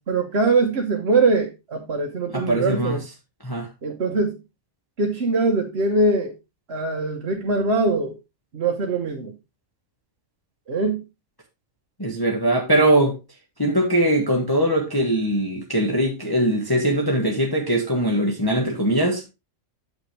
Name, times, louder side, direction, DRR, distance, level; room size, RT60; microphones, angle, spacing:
voice 1, 0.1-3.0 3.8-4.4 5.0-6.3 6.7-8.2 8.5-9.3 10.7-11.0, right 3 dB, 50° right, 1.2 m, -22 dB
voice 2, 2.3-3.0 3.4-3.7 12.0-13.1 13.6-19.2, right 1 dB, 15° left, 1.3 m, -21 dB
8.8 x 6.9 x 3.2 m
omnidirectional pair, 1.4 m